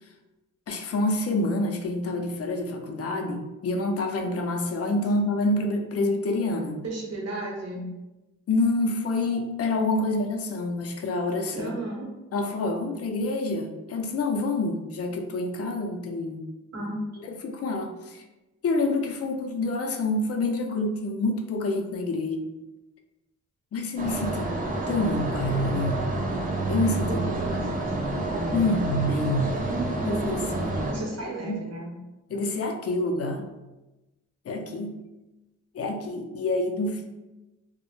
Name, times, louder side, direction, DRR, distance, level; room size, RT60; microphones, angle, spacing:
voice 1, 0.7-6.8 8.5-11.7 12.3-16.4 17.4-18.2 18.6-22.4 23.7-24.5 24.9-26.1 26.7-27.2 28.5-29.5 30.1-30.9 31.2-31.6 32.3-33.4 34.5-35.0 35.7-37.1, left 2 dB, 50° left, 4 dB, 0.4 m, -27 dB
voice 2, 6.8-7.8 11.5-12.1 16.7-17.1 27.1-28.6 29.7-30.2 30.9-31.9, right 2 dB, 55° right, -2 dB, 0.8 m, -34 dB
sound 1, 24.0-30.9, right 2 dB, 25° right, 0.4 m, -29 dB
2.0 x 2.0 x 2.9 m, 1.0 s
cardioid pair, 75°, 32 cm